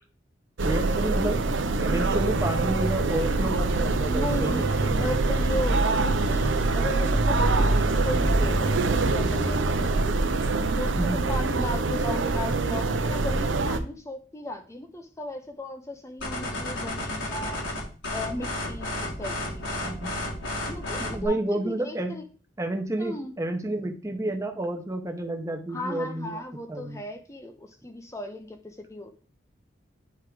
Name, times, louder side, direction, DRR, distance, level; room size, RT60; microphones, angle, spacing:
voice 1, 0.6-1.4 1.8-4.6 10.9-11.2 19.8-20.1 21.0-22.1 22.6-26.4 26.7-27.0, right 1 dB, 15° right, 4 dB, 0.9 m, -30 dB
sound 1, 0.6-13.8, right 3 dB, 85° right, 0.7 m, -24 dB
voice 2, 4.1-10.2 10.8-17.7 18.1-19.8 20.7-22.2 23.0-23.4 25.7-29.1, left 1 dB, 15° left, 5 dB, 0.6 m, -36 dB
sound 2, 16.2-21.3, left 1 dB, 85° left, 2.3 m, -32 dB
9.5 x 3.6 x 4.8 m, 0.38 s
head